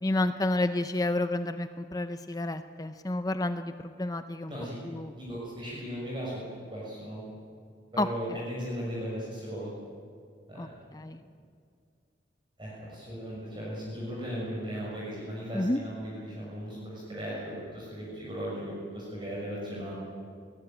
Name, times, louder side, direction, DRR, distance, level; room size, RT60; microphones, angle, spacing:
voice 1, 0.0-4.5 4.9-5.1 8.0-8.4 10.6-11.2 15.5-15.8, left 1 dB, 20° left, 10 dB, 0.6 m, -30 dB
voice 2, 5.1-7.3 7.9-9.7 10.5-10.7 12.6-19.9, equal, 25° right, -6 dB, 6.2 m, -37 dB
22.0 x 18.5 x 8.9 m, 2.3 s
head